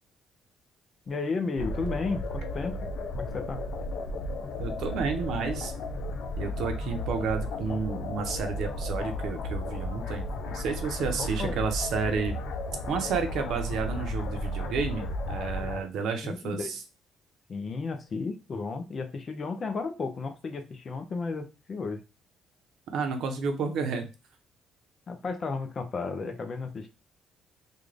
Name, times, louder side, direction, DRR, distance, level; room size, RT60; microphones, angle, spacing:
voice 1, 1.1-3.6 11.2-11.6 16.2-16.8 17.5-22.0 25.1-26.9, left 4 dB, 35° left, 7 dB, 0.7 m, -33 dB
sound 1, 1.6-15.8, left 1 dB, 75° left, 0.6 m, -34 dB
voice 2, 4.6-5.7 6.4-12.4 12.9-16.8 22.9-24.1, right 5 dB, 70° right, 6 dB, 0.8 m, -31 dB
3.7 x 2.5 x 3.3 m, 0.29 s
cardioid pair, 135°, 0 cm